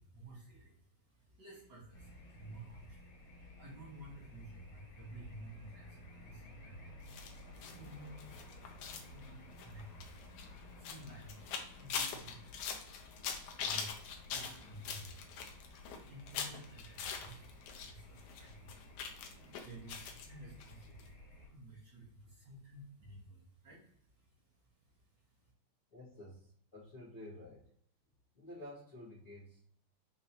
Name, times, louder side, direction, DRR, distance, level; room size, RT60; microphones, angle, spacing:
voice 1, 0.0-24.5 24.8-25.5, right 1 dB, 50° right, -5 dB, 1.4 m, -54 dB
sound 1, 1.9-21.5, left 2 dB, 55° left, 2.8 m, -55 dB
sound 2, 7.1-17.9 18.2-20.3 20.6-20.7 21.0-21.1, left 6 dB, 80° left, 1.4 m, -43 dB
voice 2, 25.9-27.7 28.3-29.7, left 1 dB, 30° left, -13 dB, 1.6 m, -51 dB
5.6 x 3.1 x 2.8 m, 0.65 s
omnidirectional pair, 3.5 m